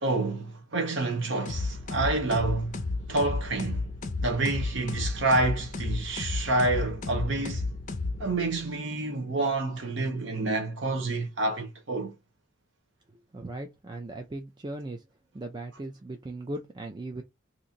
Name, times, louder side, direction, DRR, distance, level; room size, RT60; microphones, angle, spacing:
voice 1, 0.0-2.8 3.1-3.9 4.2-7.7 8.2-12.1, right 2 dB, 65° right, 0.8 m, -28 dB
sound 1, 1.5-8.6, left 3 dB, 40° left, 0.5 m, -33 dB
voice 2, 13.3-15.0 15.3-17.2, right 2 dB, 20° right, 0.4 m, -38 dB
2.9 x 2.5 x 3.8 m
head